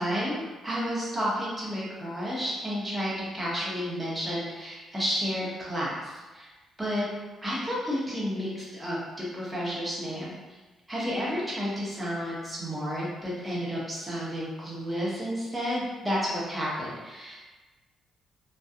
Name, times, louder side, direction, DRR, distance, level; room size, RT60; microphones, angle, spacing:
voice 1, 0.0-6.5 6.8-7.1 7.4-10.3 10.9-17.4, equal, 10° right, -7 dB, 0.9 m, -31 dB
2.7 x 2.2 x 2.4 m, 1.2 s
cardioid pair, 90°, 0 cm